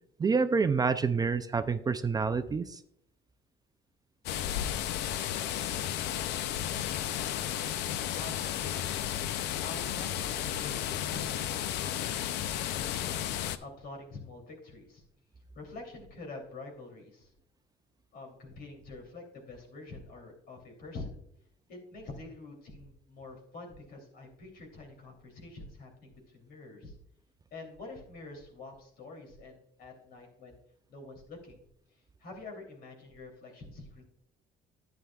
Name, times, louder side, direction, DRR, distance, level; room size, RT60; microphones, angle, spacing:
voice 1, 0.2-2.8, right 5 dB, 20° right, 10 dB, 0.4 m, -28 dB
sound 1, 4.3-13.6, left 11 dB, 85° left, 0.6 m, -33 dB
voice 2, 8.1-9.0 9.6-13.1 13.6-15.0 15.5-17.3 18.1-21.2 21.7-27.0 27.5-30.6 30.9-31.6 31.9-34.1, left 3 dB, 65° left, 2 dB, 3.0 m, -46 dB
11.0 x 8.7 x 2.3 m, 0.73 s
cardioid pair, 110°, 17 cm